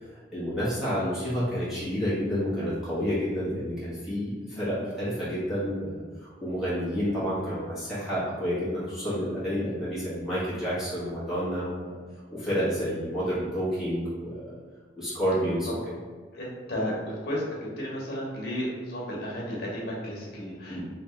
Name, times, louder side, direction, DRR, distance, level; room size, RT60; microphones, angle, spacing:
voice 1, 0.3-12.0 12.3-14.5 15.0-15.7 20.7-20.8, equal, ahead, -12 dB, 1.3 m, -29 dB
voice 2, 16.3-17.4 17.8-20.8, equal, 55° left, -4 dB, 1.2 m, -33 dB
3.4 x 3.1 x 3.2 m, 1.5 s
head